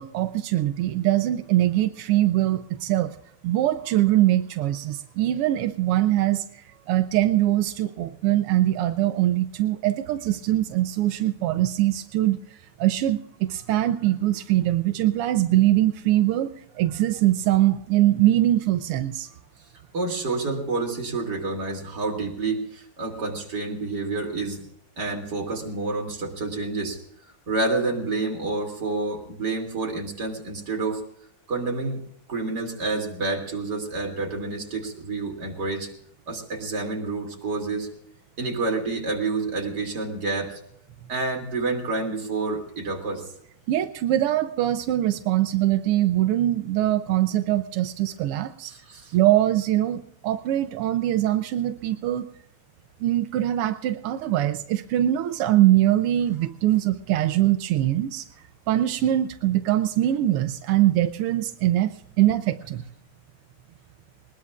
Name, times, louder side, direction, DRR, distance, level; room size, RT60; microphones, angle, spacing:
voice 1, 0.0-3.1 3.4-12.4 12.8-19.3 43.7-48.7 49.1-52.3 53.0-58.3 58.7-62.8, right 14 dB, 90° right, 9 dB, 1.7 m, -22 dB
voice 2, 19.9-24.7 25.0-27.0 27.5-31.0 31.5-32.0 32.3-35.9 36.3-37.9 38.4-40.6 41.1-43.3 48.6-49.2, right 3 dB, 50° right, 1 dB, 3.4 m, -28 dB
21.0 x 20.5 x 2.4 m, 0.70 s
omnidirectional pair, 2.4 m